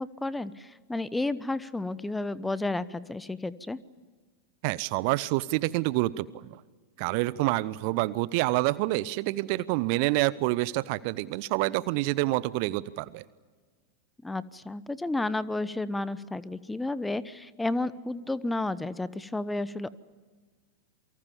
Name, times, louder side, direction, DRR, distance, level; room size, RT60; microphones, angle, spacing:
voice 1, 0.0-3.8 14.2-20.0, left 2 dB, 5° left, 18 dB, 0.9 m, -32 dB
voice 2, 4.6-6.6 7.0-13.3, right 19 dB, 45° right, 20 dB, 0.7 m, -27 dB
28.5 x 24.0 x 7.2 m, 1.4 s
figure-of-eight pair, 90°, 0 cm